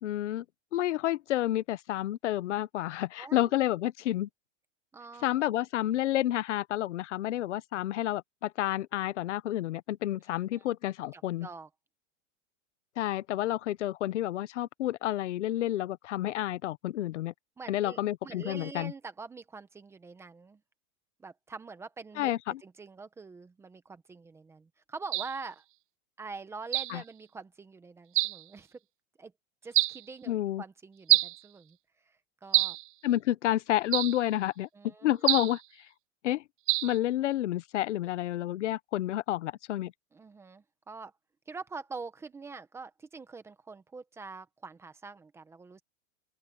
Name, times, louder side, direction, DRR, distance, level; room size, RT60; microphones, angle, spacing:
voice 1, 0.0-0.4 0.7-4.3 5.2-11.5 13.0-17.3 17.7-18.9 22.2-22.6 26.9-27.0 30.3-30.6 33.0-34.7 35.0-35.6 36.2-36.4 36.8-39.9, left 13 dB, 75° left, 1.2 m, -30 dB
voice 2, 3.2-3.6 4.9-5.5 10.5-10.6 11.1-11.7 17.6-20.6 21.2-22.3 22.6-25.6 26.2-28.8 29.2-29.3 29.6-31.8 32.1-32.8 34.7-35.3 40.1-41.1 41.5-45.8, right 4 dB, 5° right, 0.9 m, -45 dB
sound 1, 25.1-25.4 26.7-27.0 28.1-28.4 29.7-30.0 31.1-31.4 32.5-32.9 33.9-34.2 35.3-35.6 36.7-37.0, right 18 dB, 45° right, 0.7 m, -26 dB
open air
supercardioid pair, 170°, 36 cm